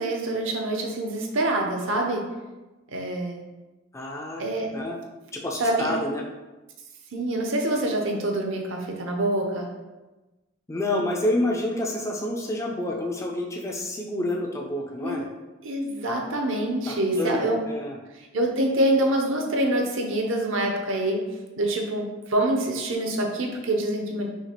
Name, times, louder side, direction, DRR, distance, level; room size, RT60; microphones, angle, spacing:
voice 1, 0.0-2.3 2.9-3.4 4.4-4.7 5.6-6.0 7.1-9.7 15.0-15.3 15.6-17.6 18.1-21.2 21.6-24.3, right 1 dB, 65° right, 2 dB, 0.6 m, -26 dB
voice 2, 3.9-4.4 4.7-5.0 5.3-6.2 10.7-15.2 16.9-18.0, left 1 dB, 15° left, 0 dB, 0.4 m, -28 dB
5.7 x 2.4 x 2.9 m, 1.1 s
head